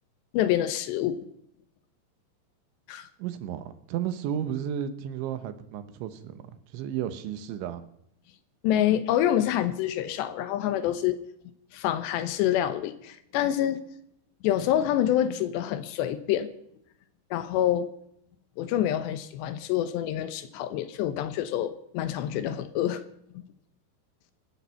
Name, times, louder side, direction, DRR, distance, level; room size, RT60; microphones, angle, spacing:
voice 1, 0.3-1.2 2.9-3.1 8.6-11.2 11.7-13.8 14.4-16.5 17.3-17.9 18.6-23.0 23.3-23.4, left 11 dB, 75° left, 12 dB, 3.0 m, -27 dB
voice 2, 3.2-7.8, right 9 dB, 85° right, 11 dB, 3.5 m, -33 dB
17.0 x 13.5 x 5.7 m, 0.74 s
omnidirectional pair, 5.3 m